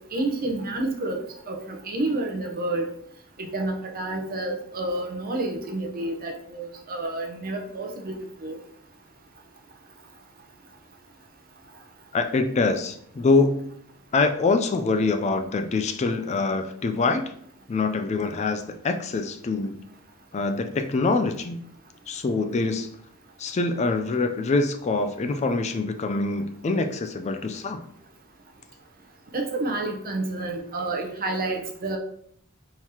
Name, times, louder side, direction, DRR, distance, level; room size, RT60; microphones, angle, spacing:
voice 1, 0.1-1.2 1.5-2.9 3.4-8.2 8.4-8.6 29.3-32.0, right 2 dB, 45° right, 2 dB, 0.7 m, -29 dB
voice 2, 12.1-13.7 14.1-17.2 17.7-19.8 20.3-21.6 22.1-22.9 23.4-27.8, left 3 dB, 30° left, 7 dB, 0.3 m, -24 dB
4.5 x 3.7 x 2.8 m, 0.66 s
head